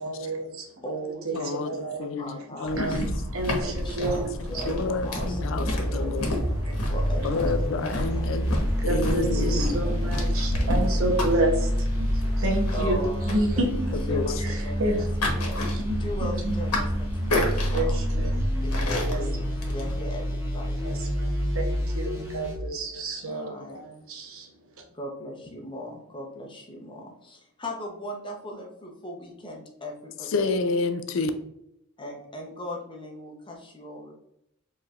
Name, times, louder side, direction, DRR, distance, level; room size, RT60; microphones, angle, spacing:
voice 1, 0.0-0.7 1.2-2.0 2.8-4.3 4.7-4.8 6.0-6.1 6.4-6.8 7.2-7.5 8.9-13.0 13.3-13.9 14.2-16.5 17.7-18.4 19.0-19.2 20.8-24.5, right 2 dB, 70° right, 1 dB, 0.8 m, -30 dB
voice 2, 0.8-3.0 3.6-6.2 6.9-8.3 9.3-10.3 10.6-11.1 12.7-13.7 14.1-15.7 16.0-18.0 18.6-21.0 22.1-22.2 23.3-23.8 24.9-30.6 32.0-34.1, equal, 20° left, 1 dB, 0.7 m, -39 dB
voice 3, 1.3-3.1 4.6-6.3 7.2-9.7 14.1-14.4 30.3-31.3, left 3 dB, 60° left, 9 dB, 0.4 m, -29 dB
sound 1, 2.7-20.0, left 1 dB, 85° left, 1.1 m, -32 dB
sound 2, 5.0-22.6, equal, 10° right, 0.8 m, -28 dB
4.6 x 3.2 x 2.4 m, 0.79 s
head